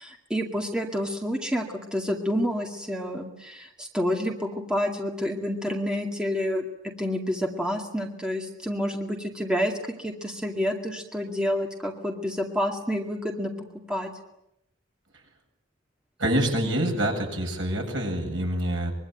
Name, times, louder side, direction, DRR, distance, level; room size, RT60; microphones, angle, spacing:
voice 1, 0.0-1.7 1.9-6.6 7.0-9.7 10.0-13.5 13.9-14.1, equal, 5° right, 1 dB, 2.2 m, -28 dB
voice 2, 16.2-18.9, right 1 dB, 70° right, 2 dB, 7.9 m, -26 dB
24.5 x 23.0 x 9.3 m, 0.85 s
head